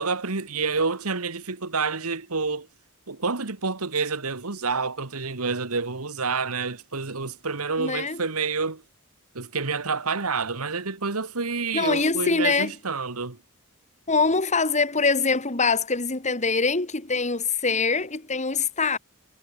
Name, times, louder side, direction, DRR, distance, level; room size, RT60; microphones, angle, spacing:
voice 1, 0.0-2.7 3.1-8.8 9.3-13.4, right 4 dB, 90° right, 1.8 m, -28 dB
voice 2, 7.8-8.2 11.7-12.7 14.1-19.0, left 4 dB, 35° left, 2.8 m, -24 dB
head